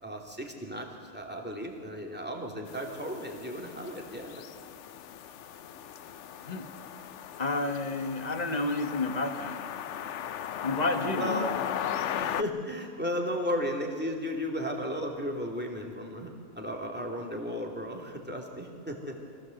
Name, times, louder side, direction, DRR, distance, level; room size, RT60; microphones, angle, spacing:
voice 1, 0.0-4.4 11.2-11.6 12.1-19.2, equal, 5° right, 0 dB, 2.7 m, -35 dB
sound 1, 2.7-12.4, left 9 dB, 65° left, 0.9 m, -37 dB
voice 2, 7.4-9.6 10.6-11.6, left 2 dB, 30° left, 8 dB, 1.3 m, -30 dB
24.0 x 16.0 x 7.9 m, 2.5 s
omnidirectional pair, 1.4 m